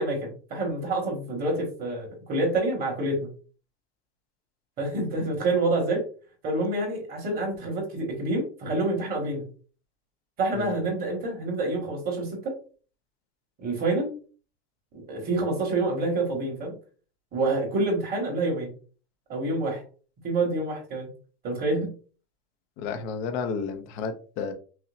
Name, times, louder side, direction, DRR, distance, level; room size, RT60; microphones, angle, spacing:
voice 1, 0.0-3.3 4.8-6.0 6.4-9.4 10.4-12.6 13.6-14.1 14.9-16.7 17.3-18.7 19.3-19.8 20.2-21.1 21.4-21.9, right 2 dB, 25° right, 0 dB, 1.5 m, -27 dB
voice 2, 22.8-24.5, left 5 dB, 25° left, 7 dB, 0.4 m, -32 dB
5.6 x 2.0 x 2.6 m, 0.39 s
supercardioid pair, 145°, 35 cm